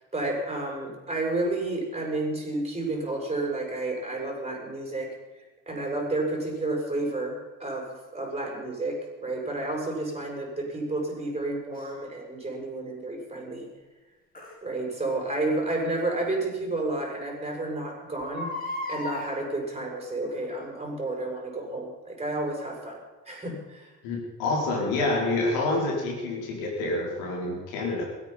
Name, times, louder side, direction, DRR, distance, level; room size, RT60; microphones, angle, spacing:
voice 1, 0.1-5.1 5.7-13.7 14.6-18.5 18.9-23.0 23.3-23.9, right 2 dB, 15° right, 1 dB, 6.6 m, -31 dB
Crying sobbing, 11.7-11.9 14.3-14.5 16.1-16.2 16.7-16.8 17.1-17.2 18.2-19.3 20.2-20.6 21.1-21.2, left 1 dB, 20° left, 5.5 m, -35 dB
voice 2, 24.0-28.0, left 2 dB, 60° left, 0 dB, 5.1 m, -27 dB
17.5 x 13.5 x 5.7 m, 1.2 s
figure-of-eight pair, 55°, 40 cm